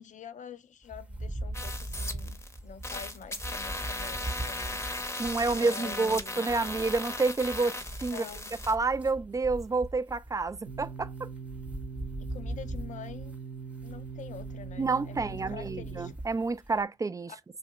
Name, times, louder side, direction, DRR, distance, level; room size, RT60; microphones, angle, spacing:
voice 1, 0.0-6.4 8.1-8.5 12.2-13.4 13.8-16.1 17.3-17.4, left 7 dB, 65° left, 0.5 m, -46 dB
sound 1, 0.8-16.8, right 1 dB, 10° right, 0.9 m, -41 dB
sound 2, 1.5-2.6 2.8-8.8, left 2 dB, 20° left, 0.7 m, -37 dB
voice 2, 5.2-8.2 8.7-11.3 14.8-17.3, right 3 dB, 25° right, 0.4 m, -29 dB
sound 3, 10.7-16.1, right 5 dB, 85° right, 0.8 m, -41 dB
2.7 x 2.3 x 3.0 m
supercardioid pair, 40°, 14 cm